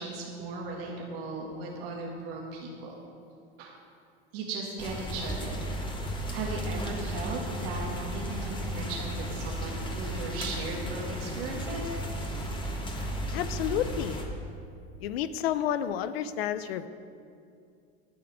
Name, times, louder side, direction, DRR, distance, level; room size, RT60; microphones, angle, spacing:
voice 1, 0.0-2.9 3.6-3.7 4.3-5.7 6.3-12.0, right 3 dB, 70° right, -3 dB, 2.1 m, -37 dB
sound 1, 4.8-14.2, equal, 15° left, 1.5 m, -34 dB
voice 2, 13.3-14.2 15.0-16.9, left 10 dB, 85° left, 13 dB, 0.6 m, -30 dB
10.5 x 6.0 x 8.5 m, 2.5 s
supercardioid pair, 110°, 30 cm